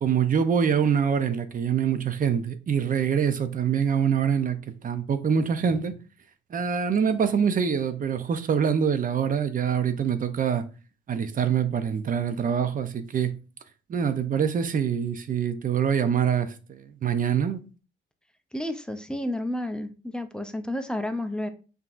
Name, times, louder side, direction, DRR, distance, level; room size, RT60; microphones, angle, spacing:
voice 1, 0.0-4.6 4.8-6.0 6.5-10.6 11.1-13.3 13.9-17.6, right 7 dB, 45° right, 0.6 m, -25 dB
voice 2, 18.5-21.5, left 1 dB, 5° left, 0.5 m, -31 dB
5.8 x 2.7 x 2.5 m
cardioid pair, 90°, 20 cm